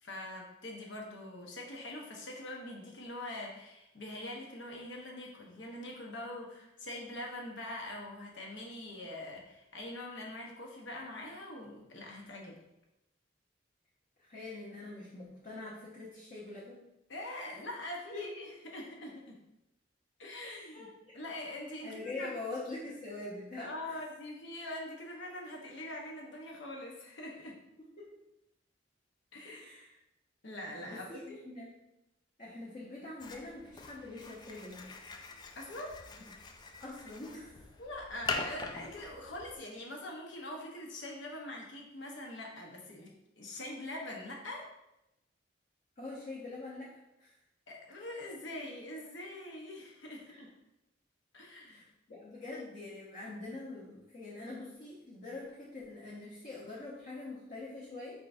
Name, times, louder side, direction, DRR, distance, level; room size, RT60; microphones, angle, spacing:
voice 1, 0.0-12.6 17.1-19.4 20.2-20.9 21.1-22.4 23.6-27.5 29.3-29.6 30.4-31.4 35.5-36.0 37.8-44.7 47.7-50.5 51.3-51.8, left 1 dB, 75° left, 0 dB, 0.9 m, -43 dB
voice 2, 14.2-16.8 18.1-18.3 20.4-20.9 21.8-24.0 28.0-28.1 29.4-30.0 30.8-31.2 31.4-31.7 32.4-34.9 36.8-37.6 46.0-46.9 47.2-47.4 50.3-50.4 51.7-58.2, left 2 dB, 45° left, -7 dB, 0.9 m, -44 dB
sound 1, 33.2-39.6, left 3 dB, 25° left, 0.3 m, -43 dB
4.6 x 3.7 x 2.6 m, 0.90 s
head